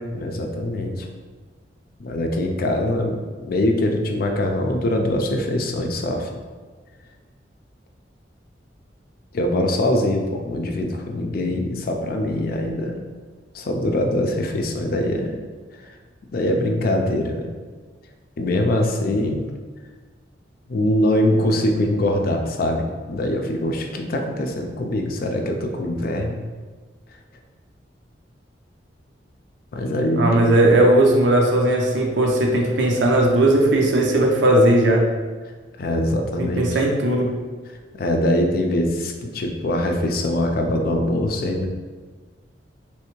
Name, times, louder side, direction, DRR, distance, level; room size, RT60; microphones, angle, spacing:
voice 1, 0.1-1.1 2.0-6.4 9.3-13.0 13.5-15.4 16.3-17.5 18.4-19.4 20.7-26.4 27.1-27.2 29.7-30.4 35.8-36.8 37.9-41.7, left 1 dB, 55° left, 4 dB, 0.4 m, -23 dB
voice 2, 30.2-35.1 36.4-37.3, right 1 dB, 90° right, 1 dB, 0.6 m, -17 dB
3.3 x 3.1 x 3.1 m, 1.4 s
head